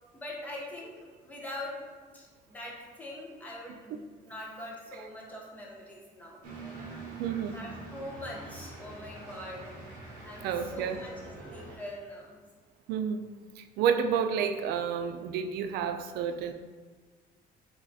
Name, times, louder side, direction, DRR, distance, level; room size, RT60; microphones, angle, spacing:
voice 1, 0.1-0.9 1.2-1.8 2.1-7.0 7.5-9.8 10.2-12.4, left 1 dB, 10° left, -3 dB, 0.8 m, -43 dB
sound 1, 6.4-11.8, right 3 dB, 55° right, 1.0 m, -45 dB
voice 2, 7.2-7.6 10.4-11.0 12.9-13.2 13.6-16.5, right 7 dB, 75° right, 8 dB, 0.4 m, -30 dB
3.6 x 3.1 x 4.1 m, 1.4 s
cardioid pair, 170°, 16 cm